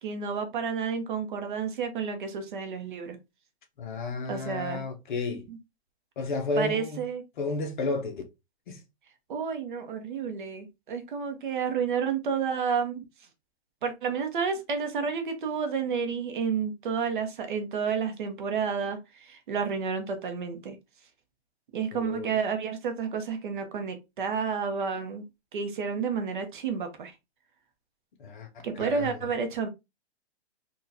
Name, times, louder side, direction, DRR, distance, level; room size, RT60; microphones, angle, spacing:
voice 1, 0.0-3.2 4.3-4.9 5.5-5.6 6.6-7.2 9.3-13.0 13.8-20.8 21.7-25.2 25.5-27.1 28.6-29.7, right 6 dB, 50° right, 0.8 m, -30 dB
voice 2, 3.8-5.4 6.2-7.0 7.4-8.2 8.7-8.8 21.9-22.4 28.2-28.5 28.7-29.2, left 3 dB, 45° left, 0.8 m, -32 dB
3.9 x 2.4 x 2.6 m
hypercardioid pair, 160°, 33 cm